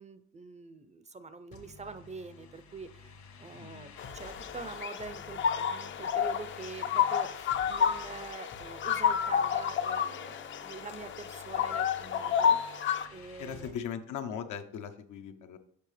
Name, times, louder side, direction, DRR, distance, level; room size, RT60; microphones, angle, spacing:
voice 1, 0.0-13.7, right 4 dB, 25° right, 12 dB, 0.4 m, -45 dB
sound 1, 1.5-13.7, left 4 dB, 65° left, 1.4 m, -52 dB
voice 2, 3.5-3.9 13.4-15.6, left 8 dB, 80° left, 7 dB, 0.7 m, -39 dB
sound 2, 4.0-13.1, left 8 dB, 40° left, 0.4 m, -30 dB
6.8 x 5.4 x 3.2 m, 0.63 s
cardioid pair, 90°, 30 cm